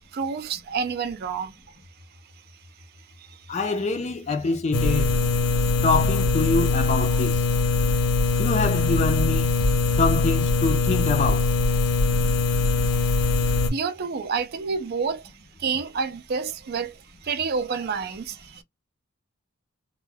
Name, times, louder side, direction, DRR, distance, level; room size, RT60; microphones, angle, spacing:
voice 1, 0.1-1.5 3.2-3.4 13.7-15.3 15.6-18.6, right 5 dB, 45° right, 0.3 m, -29 dB
voice 2, 3.5-5.2 5.8-7.5 8.4-9.5 10.0-11.5, left 3 dB, 30° left, 0.4 m, -25 dB
sound 1, 4.7-13.7, left 3 dB, 90° left, 0.6 m, -22 dB
2.2 x 2.1 x 3.2 m
head